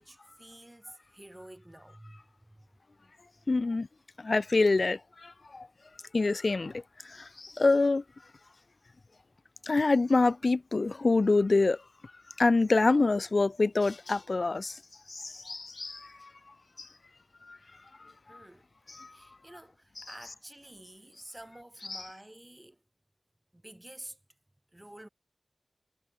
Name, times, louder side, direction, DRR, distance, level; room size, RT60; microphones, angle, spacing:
voice 1, 0.0-2.7 18.3-18.7 19.1-22.8 23.5-24.2 24.7-25.1, right 1 dB, 15° right, 3.9 m, -50 dB
voice 2, 3.5-3.9 4.2-5.7 6.1-8.0 9.7-11.8 12.4-14.8 15.1-16.3 16.8-16.9 17.5-17.6 19.0-19.1 21.9-22.0, left 3 dB, 55° left, 0.4 m, -26 dB
wide cardioid pair, 85°, 0 cm